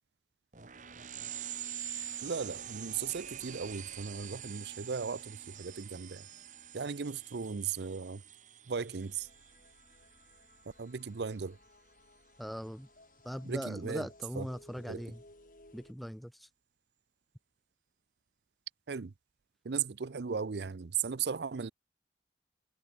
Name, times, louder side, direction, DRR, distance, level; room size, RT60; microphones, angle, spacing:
sound 1, 0.5-10.7, right 10 dB, 45° right, 1.4 m, -45 dB
voice 1, 2.2-6.3 6.7-8.2 8.7-9.3 10.8-11.6 13.4-14.1 14.4-14.5 14.9-15.0 18.9-19.1 19.6-21.7, right 6 dB, 70° right, 0.6 m, -36 dB
sound 2, 8.9-15.9, left 2 dB, 50° left, 4.7 m, -60 dB
voice 2, 12.4-12.9 13.2-15.2 15.7-16.5, equal, ahead, 0.6 m, -40 dB
head